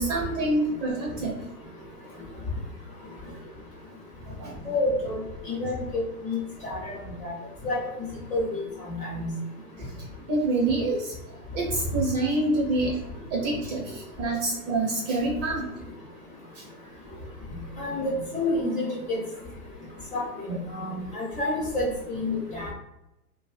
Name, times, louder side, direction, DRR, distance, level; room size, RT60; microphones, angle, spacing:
voice 1, 0.0-1.3 3.2-3.3 4.3-4.6 9.8-9.9 10.3-11.1 11.5-13.0 13.3-15.6 16.6-16.7, right 2 dB, 30° right, -2 dB, 0.5 m, -26 dB
voice 2, 4.7-5.2 5.5-6.9 7.2-7.3 7.6-7.8 8.3-9.3 17.8-19.2 20.1-22.7, left 2 dB, 15° left, -4 dB, 0.6 m, -29 dB
2.6 x 2.3 x 2.7 m, 0.88 s
hypercardioid pair, 130°, 47 cm